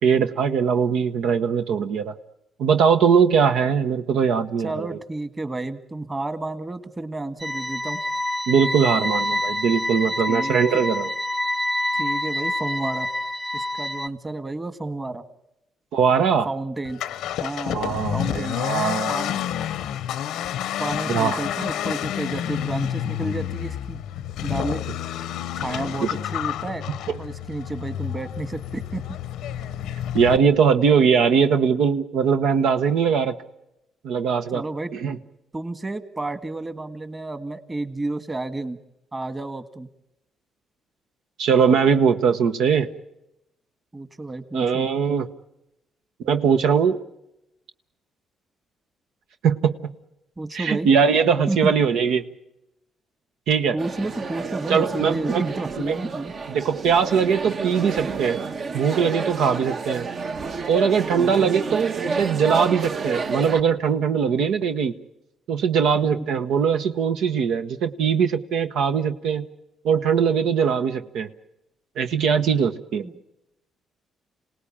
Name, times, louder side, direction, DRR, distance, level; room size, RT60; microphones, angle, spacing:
voice 1, 0.0-2.1 2.6-5.0 8.5-11.1 15.9-16.5 17.7-19.1 21.1-21.4 26.0-26.1 30.1-33.4 34.0-34.6 34.9-35.2 41.4-42.9 44.5-45.3 46.2-47.0 49.4-49.7 50.5-52.3 53.5-53.8 54.7-55.5 55.8-56.0 56.5-58.4 58.7-60.1 60.7-64.9 65.5-69.5 69.8-71.3 72.0-73.0, right 6 dB, 80° right, 8 dB, 1.1 m, -21 dB
voice 2, 4.6-8.0 10.3-10.8 11.9-13.1 13.5-15.2 16.4-17.0 17.4-18.6 19.1-19.4 20.8-24.0 24.4-24.8 25.5-26.9 27.2-29.0 34.5-34.9 35.5-38.8 39.1-39.9 43.9-44.8 50.4-50.9 51.5-51.7 53.7-56.3 61.2-61.5 66.0-66.3 73.0-73.2, right 2 dB, 20° right, 11 dB, 1.7 m, -31 dB
sound 1, 7.4-14.1, left 1 dB, 5° left, 0.8 m, -27 dB
Accelerating revving vroom, 16.8-30.4, left 10 dB, 90° left, 0.8 m, -29 dB
sound 2, 53.8-63.6, right 4 dB, 50° right, 1.2 m, -30 dB
27.5 x 18.5 x 8.7 m, 0.89 s
cardioid pair, 90°, 0 cm